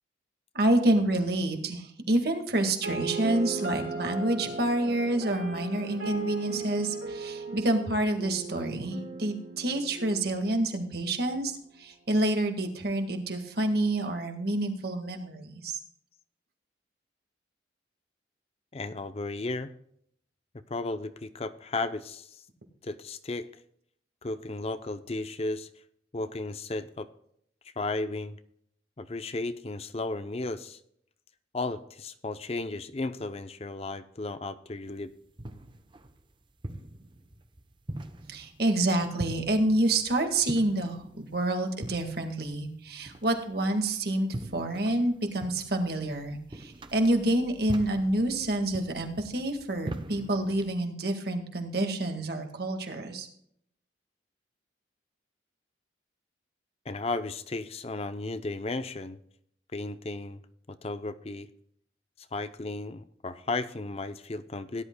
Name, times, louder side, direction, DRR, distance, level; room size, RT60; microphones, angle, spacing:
voice 1, 0.6-15.8 38.3-53.3, right 1 dB, 55° right, 5 dB, 1.8 m, -28 dB
sound 1, 2.8-10.8, right 3 dB, 85° right, 3.9 m, -37 dB
voice 2, 18.7-19.7 20.7-22.4 22.8-23.5 24.2-25.7 26.1-27.1 27.8-28.4 29.0-30.8 31.5-35.1 56.9-59.2 59.7-60.4 60.8-61.5 62.3-64.8, left 2 dB, 35° left, 12 dB, 0.5 m, -34 dB
sound 2, 34.9-50.8, right 1 dB, 25° right, 0.7 m, -43 dB
17.5 x 11.0 x 2.2 m, 0.68 s
head